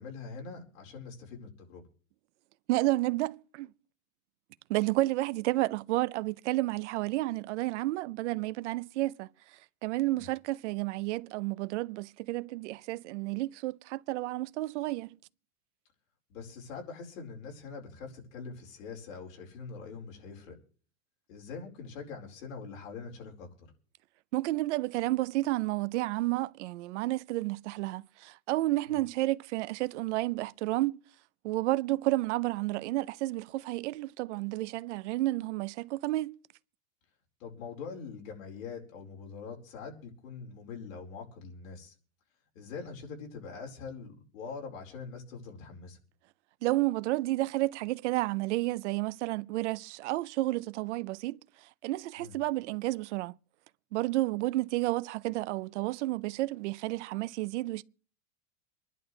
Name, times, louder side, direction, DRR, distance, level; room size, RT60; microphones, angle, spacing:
voice 1, 0.0-1.8 10.1-10.3 16.3-20.6 21.3-23.7 28.9-29.0 37.4-41.9 42.5-46.0 52.2-52.4, left 5 dB, 75° left, 4.7 m, -43 dB
voice 2, 2.7-3.7 4.7-9.3 9.8-15.1 24.3-31.0 31.4-36.3 46.6-51.4 51.8-53.3 53.9-57.8, right 18 dB, 60° right, 0.6 m, -31 dB
26.0 x 11.0 x 3.3 m
supercardioid pair, 180°, 39 cm